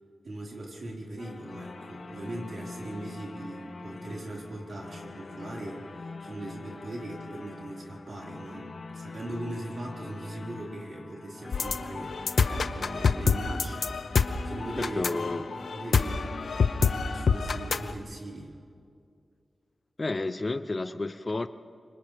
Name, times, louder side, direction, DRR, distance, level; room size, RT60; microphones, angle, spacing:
voice 1, 0.2-18.6, right 1 dB, 60° right, -3 dB, 4.9 m, -40 dB
sound 1, 1.2-17.3, left 3 dB, 65° left, 1.6 m, -43 dB
sound 2, 11.5-17.9, left 5 dB, 85° left, 0.8 m, -26 dB
voice 2, 15.0-15.4 20.0-21.5, left 3 dB, 35° left, 12 dB, 0.6 m, -31 dB
29.5 x 26.0 x 3.5 m, 2.4 s
wide cardioid pair, 105°, 0 cm